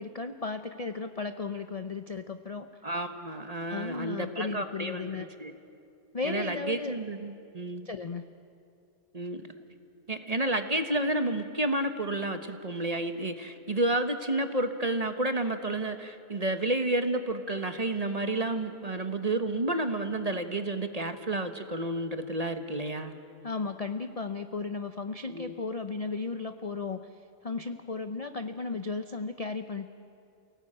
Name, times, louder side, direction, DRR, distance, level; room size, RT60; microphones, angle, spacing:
voice 1, 0.0-2.7 3.7-5.3 6.1-7.0 7.8-8.3 23.4-27.1 27.4-29.9, left 4 dB, 45° left, 9 dB, 0.5 m, -35 dB
voice 2, 2.8-5.1 5.4-5.5 6.2-7.9 9.1-9.4 10.1-23.1 25.3-25.5, right 2 dB, 30° right, 8 dB, 1.1 m, -30 dB
28.5 x 18.0 x 8.8 m, 2.5 s
omnidirectional pair, 1.6 m